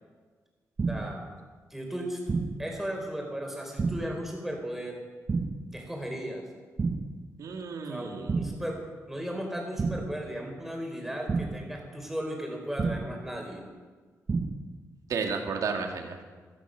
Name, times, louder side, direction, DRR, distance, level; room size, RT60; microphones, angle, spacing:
sound 1, 0.8-1.3 2.3-2.8 3.8-4.3 5.3-5.8 6.8-7.3 8.3-8.8 9.8-10.3 11.3-11.8 12.8-13.3 14.3-14.8, right 4 dB, 35° right, 0.9 m, -30 dB
voice 1, 0.9-1.2 1.7-2.2 2.6-5.0 5.7-6.4 7.9-8.8 9.1-13.6, equal, 5° right, 1 dB, 4.0 m, -36 dB
voice 2, 7.4-8.3 15.1-16.2, right 5 dB, 80° right, 3 dB, 2.3 m, -32 dB
15.5 x 14.0 x 6.4 m, 1.4 s
wide cardioid pair, 130°, 6 cm